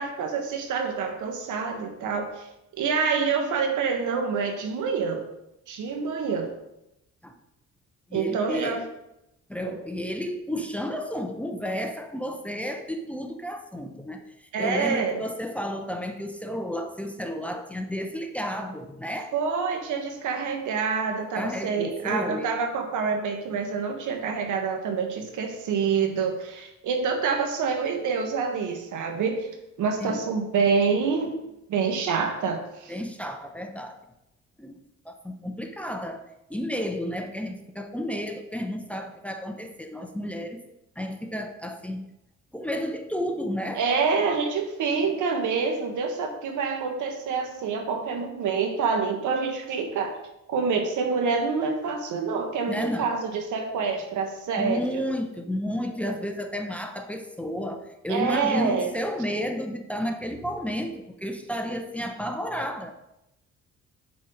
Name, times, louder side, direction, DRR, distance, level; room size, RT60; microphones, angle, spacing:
voice 1, 0.0-2.5 2.7-5.2 5.7-6.5 8.1-8.8 9.7-9.8 14.5-15.2 19.3-29.5 29.8-31.4 31.7-32.9 43.7-50.1 50.5-55.0 58.1-58.9, right 5 dB, 80° right, 4 dB, 1.5 m, -27 dB
voice 2, 8.1-8.8 9.5-19.3 21.3-22.5 30.0-30.2 32.9-33.9 34.6-34.8 35.0-36.2 36.5-40.6 41.0-42.1 42.5-43.8 52.7-53.1 54.6-62.9, equal, 5° left, 5 dB, 0.8 m, -32 dB
8.2 x 4.3 x 5.1 m, 0.88 s
cardioid pair, 90°, 30 cm